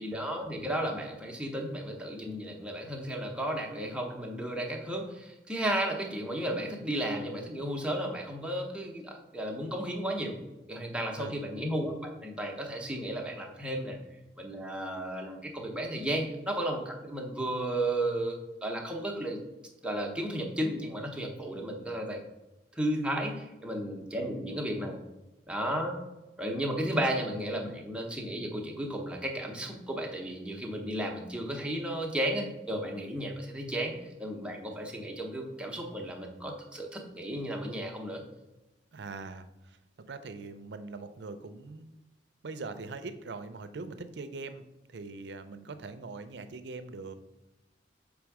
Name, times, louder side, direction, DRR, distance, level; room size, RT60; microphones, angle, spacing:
voice 1, 0.0-10.4 10.7-14.0 14.4-19.4 19.8-22.2 22.8-25.0 25.5-26.0 26.4-38.2, right 1 dB, 5° right, 1 dB, 0.8 m, -34 dB
voice 2, 38.9-39.8 40.1-41.9 42.4-44.6 44.9-47.1, right 3 dB, 70° right, 11 dB, 0.5 m, -42 dB
6.2 x 3.5 x 4.7 m, 1.0 s
head